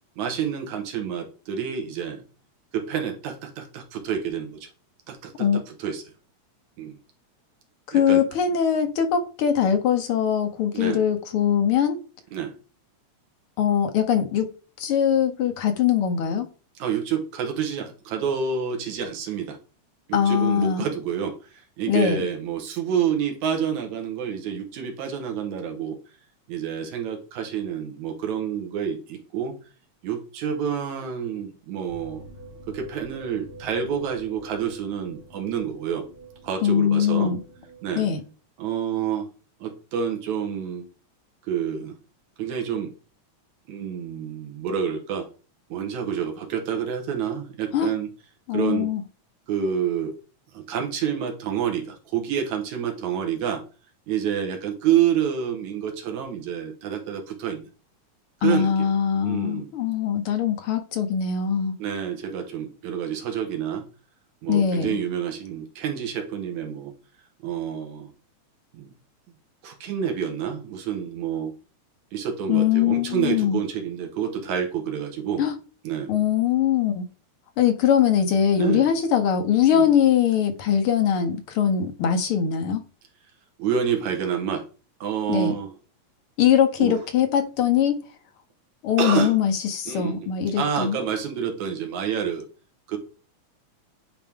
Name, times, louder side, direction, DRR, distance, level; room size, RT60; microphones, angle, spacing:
voice 1, 0.2-2.2 2.7-4.7 5.1-6.0 6.8-7.0 7.9-8.2 10.7-11.0 12.3-12.5 16.8-19.6 20.1-26.0 26.5-29.6 30.0-32.2 32.7-36.1 36.4-37.3 37.8-38.0 38.6-39.3 39.6-40.9 41.4-42.0 42.4-42.9 43.7-45.3 45.7-48.1 48.5-48.9 49.5-50.1 50.5-53.6 54.1-57.7 58.4-58.9 59.2-59.7 61.8-63.8 64.4-66.9 67.4-68.1 68.7-68.9 69.6-71.5 72.1-75.4 75.8-76.1 78.6-78.9 79.7-79.9 83.6-84.6 85.0-85.7 86.8-87.0 89.0-89.3 89.9-90.3 90.6-92.4 92.9-93.0, right 8 dB, 75° right, 2.6 m, -28 dB
voice 2, 7.9-12.0 13.6-14.5 14.8-16.5 20.1-20.9 21.9-22.2 36.6-37.4 37.9-38.2 47.7-47.9 48.5-49.0 58.4-61.7 64.5-65.0 72.5-73.6 75.4-75.5 76.1-77.0 77.6-82.8 85.3-85.5 86.4-88.0 88.8-91.0, left 8 dB, 70° left, 1.4 m, -22 dB
sound 1, 31.9-38.2, right 2 dB, 20° right, 3.2 m, -46 dB
10.0 x 4.5 x 3.6 m
omnidirectional pair, 3.4 m